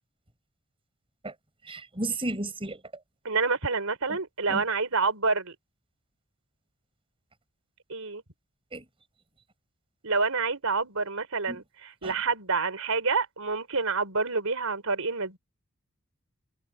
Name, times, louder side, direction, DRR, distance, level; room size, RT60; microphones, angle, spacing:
voice 1, 1.7-2.8 4.5-4.6 8.7-8.8 11.5-11.6 12.0-12.1, right 2 dB, 25° right, 5.7 m, -33 dB
voice 2, 3.2-5.5 7.9-8.2 10.0-15.4, right 4 dB, 80° right, 4.1 m, -28 dB
head